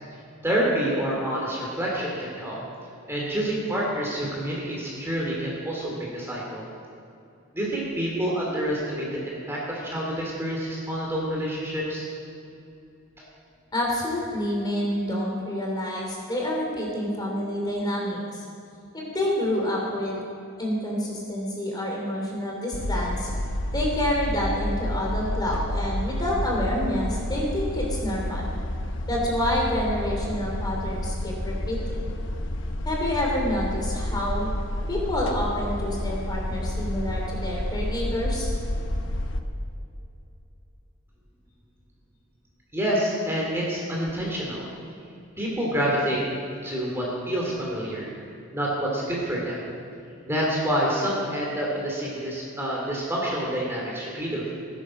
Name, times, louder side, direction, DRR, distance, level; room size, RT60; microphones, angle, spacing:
voice 1, 0.4-2.6 3.1-6.6 7.5-12.0 42.7-44.7 45.4-46.2 46.6-48.1 48.5-49.6 50.3-54.5, equal, 10° right, -4 dB, 2.5 m, -27 dB
voice 2, 13.7-18.4 18.9-20.2 20.6-23.3 23.7-28.5 29.1-32.1 32.8-34.5 34.9-38.5, left 1 dB, 20° left, -2 dB, 3.1 m, -28 dB
sound 1, 22.7-39.4, left 1 dB, 60° left, 0.9 m, -30 dB
18.5 x 10.0 x 6.2 m, 2.7 s
head